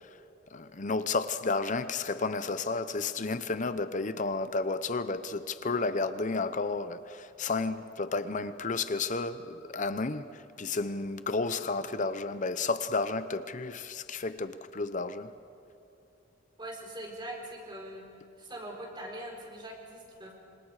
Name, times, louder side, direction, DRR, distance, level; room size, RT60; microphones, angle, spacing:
voice 1, 0.5-15.3, left 3 dB, 40° left, 0.7 m, -32 dB
voice 2, 16.6-18.0 18.4-20.4, right 1 dB, 25° right, 4.4 m, -42 dB
27.5 x 26.5 x 4.9 m
head